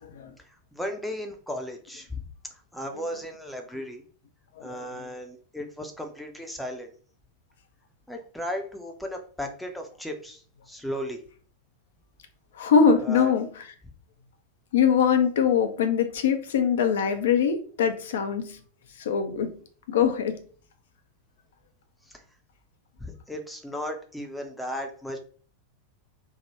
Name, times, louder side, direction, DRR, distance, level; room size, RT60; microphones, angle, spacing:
voice 1, 0.5-2.2 2.7-4.0 4.6-6.9 8.1-10.4 10.7-11.2 13.0-13.3 22.1-22.2 23.0-25.2, left 1 dB, ahead, 3 dB, 0.6 m, -35 dB
voice 2, 4.6-5.1 12.5-13.7 14.7-18.6 19.0-19.6 19.9-20.4, left 7 dB, 60° left, 7 dB, 0.5 m, -23 dB
3.4 x 2.2 x 4.2 m, 0.43 s
figure-of-eight pair, 90°, 0 cm